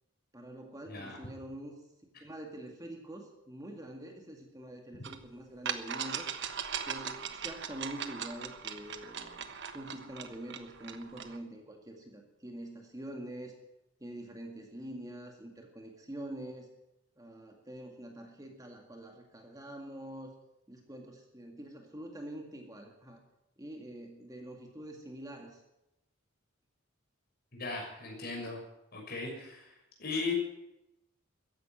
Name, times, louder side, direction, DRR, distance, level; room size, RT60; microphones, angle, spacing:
voice 1, 0.3-1.8 2.2-6.3 6.8-9.5 9.7-13.6 14.0-16.7 17.2-20.3 20.7-23.2 23.6-25.6, right 1 dB, 15° right, 2 dB, 2.0 m, -45 dB
voice 2, 0.9-1.2 27.5-28.6 28.9-30.3, left 3 dB, 50° left, -1 dB, 6.4 m, -38 dB
sound 1, 5.0-5.2 5.7-11.4, right 7 dB, 60° right, 1.3 m, -39 dB
14.5 x 11.0 x 9.1 m, 0.89 s
head